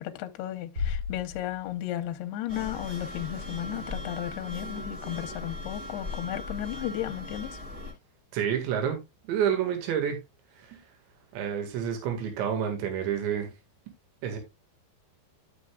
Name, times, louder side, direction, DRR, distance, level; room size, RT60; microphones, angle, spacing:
voice 1, 0.0-7.6, left 13 dB, 75° left, 2.4 m, -34 dB
sound 1, 0.8-2.2, left 6 dB, 35° right, 3.6 m, -34 dB
sound 2, 2.5-7.9, left 1 dB, 15° right, 3.5 m, -38 dB
voice 2, 8.3-9.0 9.3-10.2 10.7-10.8 11.3-13.5 14.2-14.4, right 8 dB, 75° right, 4.2 m, -28 dB
12.0 x 6.9 x 2.4 m
omnidirectional pair, 5.3 m